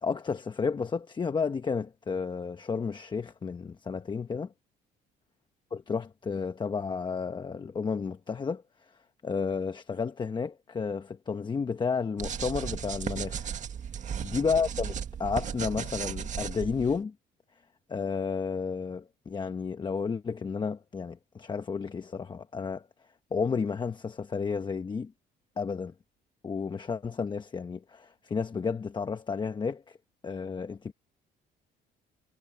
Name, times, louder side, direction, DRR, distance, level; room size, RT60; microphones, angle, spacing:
voice 1, 0.0-4.5 5.7-8.6 9.2-13.5 14.2-17.1 17.9-22.8 23.3-25.1 25.6-25.9 26.4-30.0 30.2-30.9, left 5 dB, 25° left, 1.1 m, -32 dB
sound 1, 12.2-17.0, right 8 dB, 45° right, 1.8 m, -35 dB
cardioid pair, 110°, 17 cm